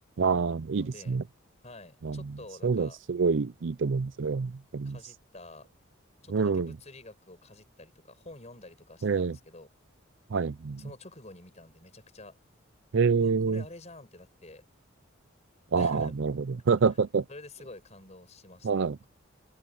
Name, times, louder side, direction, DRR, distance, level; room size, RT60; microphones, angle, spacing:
voice 1, 0.2-1.2 2.0-2.2 2.6-5.0 6.3-6.7 9.0-9.4 10.3-10.8 12.9-13.6 15.7-17.2 18.6-19.0, right 5 dB, 65° right, 0.5 m, -27 dB
voice 2, 0.8-1.2 1.6-3.0 4.8-5.7 6.2-9.7 10.8-12.4 13.2-14.7 15.8-16.1 16.9-17.0 17.3-19.1, left 2 dB, 35° left, 5.8 m, -49 dB
head